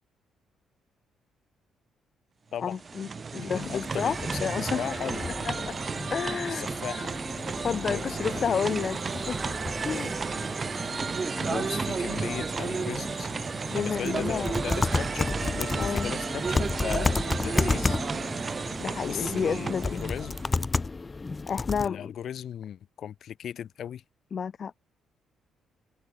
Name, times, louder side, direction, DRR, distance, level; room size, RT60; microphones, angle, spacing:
voice 1, 2.6-4.9 5.4-5.8 6.1-6.7 7.6-9.0 9.3-9.5 9.8-10.1 13.7-14.7 15.8-16.1 18.8-20.0 21.5-22.1 24.3-24.7, left 7 dB, 50° left, 0.4 m, -31 dB
sound 1, 2.6-20.6, right 5 dB, 35° right, 1.1 m, -32 dB
voice 2, 3.4-5.7 6.5-7.1 7.9-8.6 11.5-18.0 19.1-20.4 21.8-24.0, left 9 dB, 65° left, 2.3 m, -37 dB
sound 2, 3.6-21.9, left 3 dB, 25° left, 0.9 m, -33 dB
cardioid pair, 90°, 0 cm